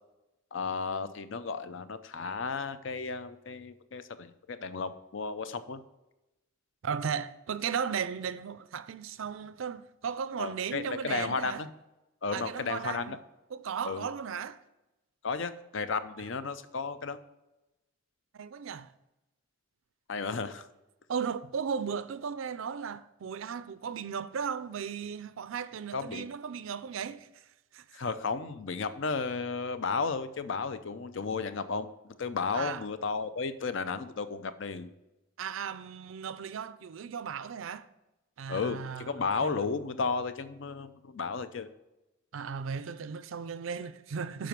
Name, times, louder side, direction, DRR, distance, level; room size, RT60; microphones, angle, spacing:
voice 1, 0.5-5.8 10.4-11.7 12.2-13.2 13.8-14.1 15.2-17.2 20.1-20.6 25.9-26.3 27.9-34.9 38.5-41.7, left 4 dB, 65° left, 0.5 m, -33 dB
voice 2, 6.8-11.6 12.3-13.1 13.5-14.6 18.3-18.9 20.3-20.4 21.1-27.3 27.7-27.8 32.5-32.8 35.4-37.9 38.4-39.6 42.3-44.5, right 6 dB, 70° right, 0.4 m, -36 dB
7.6 x 5.1 x 5.1 m
head